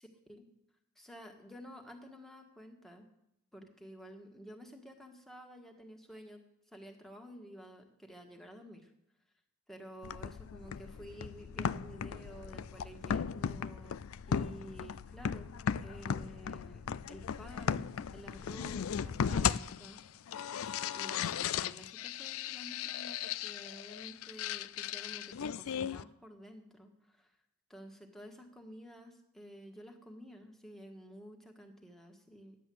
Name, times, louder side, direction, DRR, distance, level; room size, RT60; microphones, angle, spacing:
voice 1, 0.9-3.1 3.5-6.4 6.7-8.9 9.7-14.0 14.3-15.5 15.8-20.2 20.8-27.4 27.7-32.6, equal, ahead, 2 dB, 1.7 m, -51 dB
sound 1, 10.0-26.0, left 7 dB, 70° left, 0.4 m, -37 dB
12.5 x 10.0 x 7.8 m, 0.85 s
head